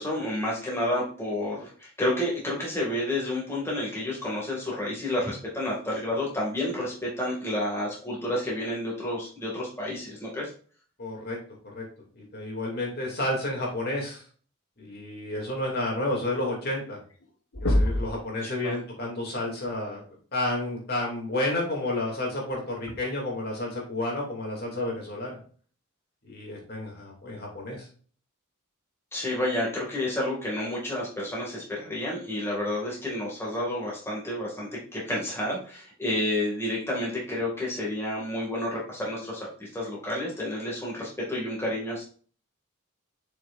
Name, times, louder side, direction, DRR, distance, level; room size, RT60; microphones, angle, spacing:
voice 1, 0.0-10.5 18.4-18.8 29.1-42.0, left 1 dB, 10° left, -4 dB, 2.2 m, -30 dB
voice 2, 11.0-11.4 11.7-11.9 12.2-14.2 14.8-17.0 17.6-20.0 20.3-25.4 26.2-27.9, left 1 dB, 45° left, -1 dB, 2.6 m, -31 dB
sound 1, 17.1-17.3 17.5-18.2 19.9-20.0 21.8-22.0 22.9-23.0, left 1 dB, 75° left, 1.4 m, -25 dB
7.0 x 6.4 x 2.5 m, 0.42 s
head